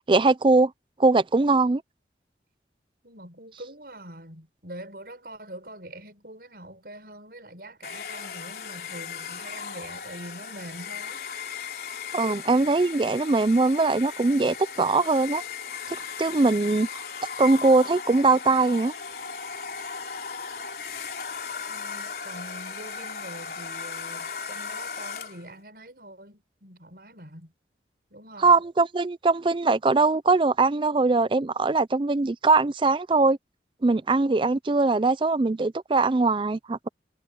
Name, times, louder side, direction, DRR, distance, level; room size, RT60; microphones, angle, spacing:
voice 1, 0.1-0.7 1.0-1.8 12.1-15.4 16.0-17.0 17.4-18.9 28.4-33.4 33.8-36.9, right 3 dB, 30° right, 0.4 m, -21 dB
voice 2, 3.0-11.3 21.7-27.5 28.1-28.6, right 1 dB, 55° right, 7.2 m, -44 dB
Domestic sounds home sounds, 7.8-25.5, left 6 dB, 55° left, 3.4 m, -37 dB
head